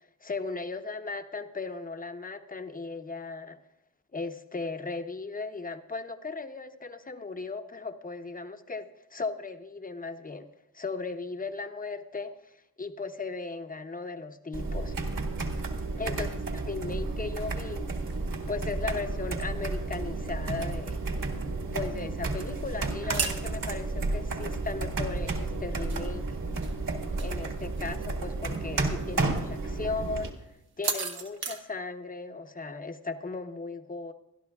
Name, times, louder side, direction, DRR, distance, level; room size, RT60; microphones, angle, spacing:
voice 1, 0.2-3.6 4.1-10.5 10.7-14.9 16.0-17.9 18.5-21.0 21.7-26.3 27.2-30.3 30.8-34.1, left 4 dB, 20° left, 8 dB, 0.8 m, -37 dB
sound 1, 14.5-30.3, right 3 dB, 55° right, 1.9 m, -32 dB
sound 2, 15.8-31.6, right 6 dB, 75° right, 1.3 m, -42 dB
24.5 x 11.5 x 2.3 m, 0.84 s
wide cardioid pair, 100°, 38 cm